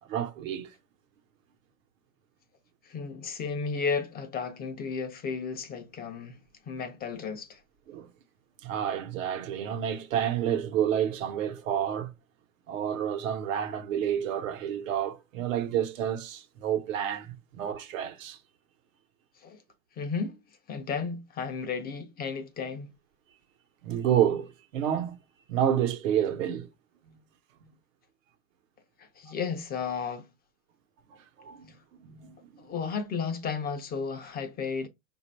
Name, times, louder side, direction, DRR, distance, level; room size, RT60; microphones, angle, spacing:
voice 1, 0.1-0.7 7.9-8.1 8.6-12.1 12.7-18.4 23.8-25.2 25.5-26.7 27.0-27.2 27.6-27.7 31.4-31.7 32.0-32.7, right 9 dB, 70° right, 1.1 m, -29 dB
voice 2, 2.8-6.4 6.7-7.6 19.4-19.6 20.0-20.4 20.7-22.9 29.0-30.3 32.6-34.9, left 5 dB, 25° left, 0.5 m, -33 dB
5.0 x 2.6 x 3.1 m
hypercardioid pair, 115°, 41 cm